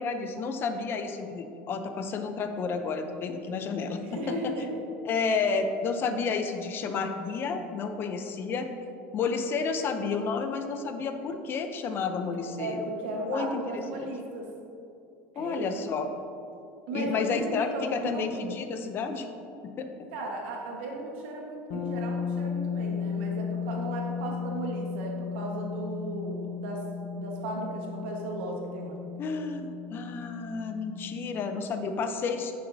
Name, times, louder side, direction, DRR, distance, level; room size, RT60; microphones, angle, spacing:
voice 1, 0.0-4.5 5.0-8.7 9.1-12.8 13.3-14.1 15.4-16.1 16.9-19.3 19.8-19.9 29.2-32.5, left 5 dB, 40° left, 7 dB, 0.6 m, -31 dB
voice 2, 4.0-4.8 12.6-14.5 15.3-15.7 16.9-18.2 20.1-26.8 27.1-29.0, right 2 dB, 85° right, 0 dB, 1.4 m, -35 dB
sound 1, 21.7-31.5, left 6 dB, 65° left, 0.9 m, -35 dB
9.9 x 6.5 x 2.7 m, 2.7 s
supercardioid pair, 125°, 6 cm